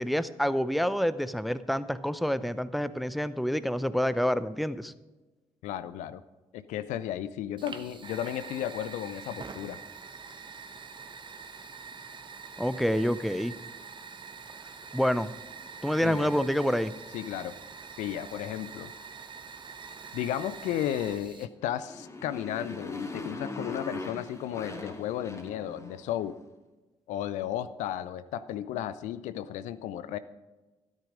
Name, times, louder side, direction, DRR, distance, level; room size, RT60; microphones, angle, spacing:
voice 1, 0.0-4.9 12.6-13.5 14.9-15.3 15.8-16.9, equal, ahead, 15 dB, 0.7 m, -27 dB
voice 2, 5.6-6.2 6.5-9.8 16.0-16.3 17.1-17.6 18.0-18.9 20.1-26.4 27.1-30.2, left 11 dB, 65° left, 14 dB, 0.5 m, -34 dB
Fire, 7.6-21.5, right 5 dB, 35° right, 1.0 m, -45 dB
Motorcycle, 21.6-26.2, left 2 dB, 20° left, 2.2 m, -40 dB
13.0 x 9.2 x 5.1 m, 1.2 s
figure-of-eight pair, 40°, 13 cm